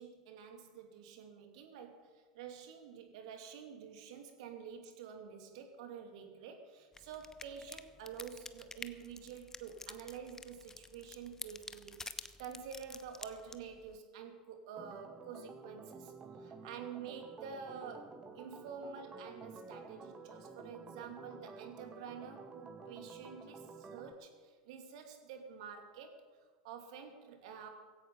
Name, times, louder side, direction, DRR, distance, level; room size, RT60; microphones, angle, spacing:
voice 1, 0.0-26.2 26.6-27.7, right 7 dB, 60° right, 5 dB, 2.7 m, -49 dB
sound 1, 6.9-14.0, left 3 dB, 15° left, 0.9 m, -50 dB
Organ, 14.8-24.1, right 4 dB, 25° right, 2.1 m, -51 dB
16.5 x 16.0 x 5.5 m, 1.5 s
figure-of-eight pair, 80°, 4 cm